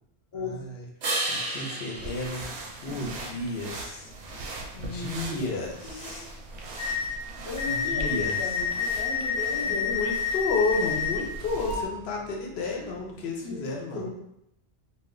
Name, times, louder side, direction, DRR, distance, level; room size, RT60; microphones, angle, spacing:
sound 1, 1.0-3.6 9.3-13.3, right 2 dB, 55° right, 0.5 m, -37 dB
voice 1, 1.3-2.4 2.8-4.5 4.8-6.2 7.7-8.4 9.7-14.1, left 3 dB, 75° left, -1 dB, 0.8 m, -32 dB
sound 2, 1.9-11.8, right 2 dB, 85° right, 0.8 m, -40 dB
voice 2, 2.9-3.2 4.7-6.4 7.4-10.0 13.4-14.1, left 2 dB, 35° left, -3 dB, 0.4 m, -37 dB
sound 3, 6.8-7.1 7.6-11.2 11.7-11.9, left 6 dB, 20° left, 0.8 m, -28 dB
2.1 x 2.1 x 3.6 m, 0.81 s
omnidirectional pair, 1.1 m